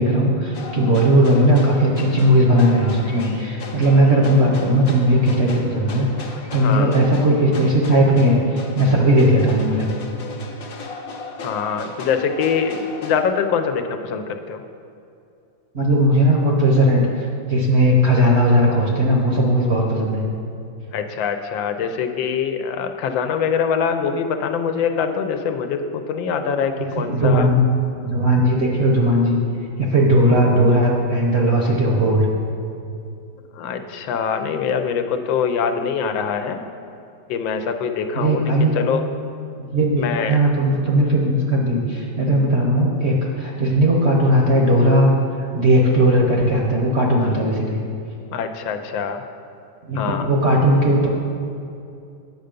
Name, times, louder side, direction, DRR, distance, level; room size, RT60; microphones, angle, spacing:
voice 1, 0.0-9.9 15.7-20.2 26.8-27.7 28.0-29.4 29.8-32.3 38.1-38.8 39.6-47.8 49.9-51.1, right 1 dB, 45° right, -1 dB, 0.9 m, -17 dB
sound 1, 0.5-13.2, left 3 dB, 55° left, 1.1 m, -36 dB
voice 2, 6.6-7.0 11.4-14.6 20.9-27.5 33.5-36.6 37.3-39.0 40.0-40.4 48.3-49.2 49.9-50.3, left 6 dB, 80° left, 7 dB, 1.3 m, -24 dB
8.3 x 6.7 x 5.1 m, 2.6 s
omnidirectional pair, 2.1 m